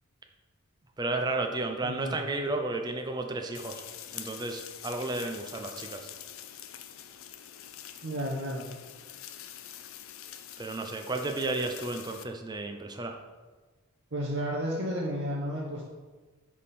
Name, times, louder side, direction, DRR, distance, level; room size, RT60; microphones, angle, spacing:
voice 1, 1.0-3.8 4.1-6.1 10.6-13.2, right 2 dB, 20° right, 4 dB, 0.4 m, -33 dB
voice 2, 1.8-2.2 8.0-8.7 14.1-15.9, equal, 55° right, -3 dB, 0.9 m, -32 dB
sound 1, 3.5-12.2, left 10 dB, 65° left, 0.5 m, -45 dB
9.8 x 3.6 x 4.2 m, 1.3 s
head